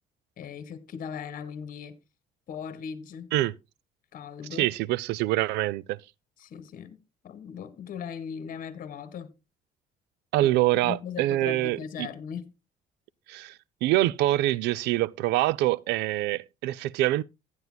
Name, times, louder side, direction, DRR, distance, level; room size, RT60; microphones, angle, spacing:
voice 1, 0.4-2.0 2.5-3.3 4.1-4.7 6.4-7.0 7.2-9.3 10.4-10.5 10.8-12.5, left 7 dB, 55° left, 1.6 m, -38 dB
voice 2, 4.6-6.0 10.3-12.1 13.3-17.2, right 16 dB, 85° right, 0.4 m, -25 dB
15.0 x 9.5 x 2.2 m
cardioid pair, 110°, 17 cm